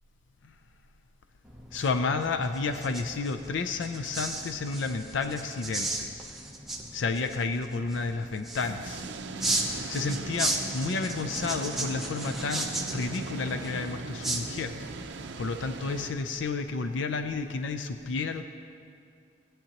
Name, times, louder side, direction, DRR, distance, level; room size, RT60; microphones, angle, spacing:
sound 1, 1.4-15.0, right 2 dB, ahead, 0.7 m, -36 dB
voice 1, 1.7-6.1 6.9-9.0 9.9-14.7 15.4-18.4, left 4 dB, 75° left, 8 dB, 0.5 m, -31 dB
sound 2, 8.6-16.1, right 3 dB, 65° right, 0.5 m, -39 dB
20.0 x 8.7 x 2.9 m, 2.4 s
head